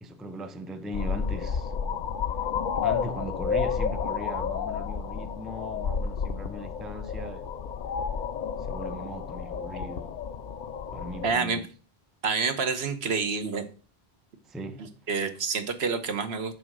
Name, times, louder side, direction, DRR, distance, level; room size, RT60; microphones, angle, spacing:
voice 1, 0.0-1.7 2.7-7.5 8.6-10.2 10.9-11.7 14.4-14.9, right 1 dB, ahead, 0.4 m, -39 dB
sound 1, 0.9-11.3, left 6 dB, 55° left, 0.6 m, -31 dB
voice 2, 11.2-11.6 12.2-13.7 15.1-16.6, right 5 dB, 80° right, 1.3 m, -28 dB
6.8 x 4.8 x 6.1 m
omnidirectional pair, 1.1 m